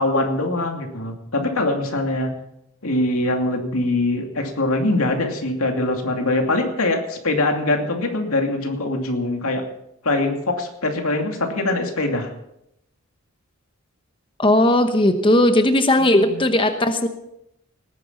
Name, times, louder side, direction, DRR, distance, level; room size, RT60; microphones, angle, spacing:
voice 1, 0.0-2.3 2.8-9.6 10.0-12.3 16.1-16.4, left 2 dB, 90° left, 3 dB, 2.6 m, -23 dB
voice 2, 14.4-17.1, left 1 dB, 25° left, 7 dB, 1.0 m, -17 dB
19.0 x 10.0 x 5.8 m, 0.80 s
head